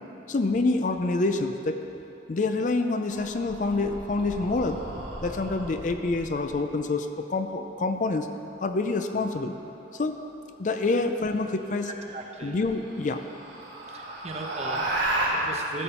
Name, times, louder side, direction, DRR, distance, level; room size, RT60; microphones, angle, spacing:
voice 1, 0.3-1.8 2.3-4.8 5.2-8.3 8.6-9.5 9.9-10.2 10.6-11.9 12.4-13.2, left 3 dB, 45° left, 7 dB, 0.4 m, -27 dB
sound 1, 3.1-6.6 8.9-9.4 11.5-11.6 12.1-12.2 12.6-15.3, right 2 dB, 80° right, 2.7 m, -34 dB
voice 2, 11.9-12.6 13.9-15.8, right 2 dB, 35° right, 2 dB, 0.8 m, -38 dB
13.5 x 7.3 x 4.4 m, 2.9 s
head